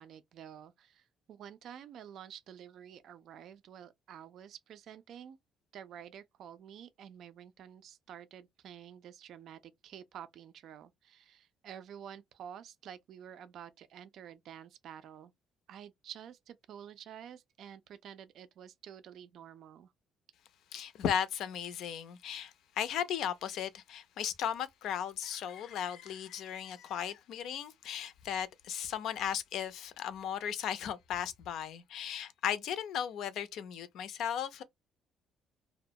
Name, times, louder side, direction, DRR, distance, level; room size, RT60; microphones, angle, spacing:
voice 1, 0.0-5.4 5.7-15.3 15.7-19.9, right 9 dB, 65° right, 0.3 m, -50 dB
voice 2, 20.7-34.6, left 9 dB, 70° left, 0.4 m, -36 dB
2.2 x 2.1 x 2.7 m
cardioid pair, 120°, 0 cm